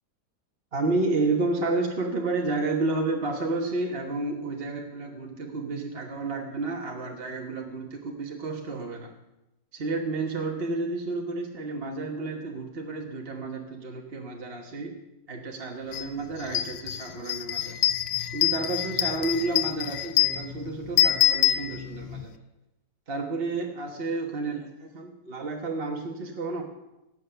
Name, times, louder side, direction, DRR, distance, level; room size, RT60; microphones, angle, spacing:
voice 1, 0.7-9.1 9.7-14.9 15.3-17.7 18.3-22.3 23.1-24.6 24.9-26.6, right 3 dB, 35° right, 1 dB, 1.5 m, -31 dB
sound 1, 15.9-16.1 16.4-22.2, left 12 dB, 80° left, 1.3 m, -26 dB
18.5 x 7.8 x 6.8 m, 0.95 s
omnidirectional pair, 1.8 m